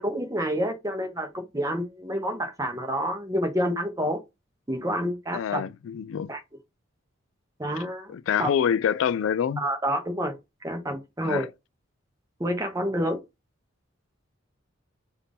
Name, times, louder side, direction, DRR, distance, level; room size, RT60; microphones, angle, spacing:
voice 1, 0.0-4.2 4.7-5.7 6.3-6.4 7.6-8.1 8.4-8.5 9.6-10.4 10.6-11.5 12.4-13.2, equal, 15° right, 1.1 m, -28 dB
voice 2, 5.3-6.3 8.1-9.6 11.2-11.5, left 8 dB, 75° left, 0.3 m, -26 dB
5.7 x 2.6 x 3.5 m
head